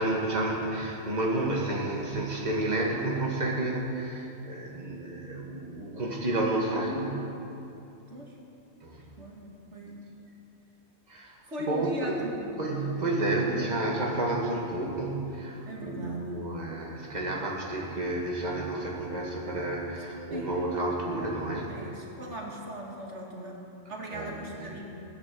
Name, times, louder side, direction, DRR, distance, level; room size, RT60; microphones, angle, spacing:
voice 1, 0.0-7.3 8.8-9.0 11.1-11.3 11.7-11.9 12.6-21.8 24.1-24.8, right 2 dB, 40° right, -2 dB, 2.1 m, -30 dB
voice 2, 9.2-10.0 11.5-12.7 14.1-14.2 15.7-16.4 16.7-16.8 20.3-20.6 21.7-23.6 23.9-24.8, equal, 90° right, -2 dB, 2.5 m, -39 dB
17.5 x 9.7 x 7.8 m, 2.8 s
omnidirectional pair, 1.2 m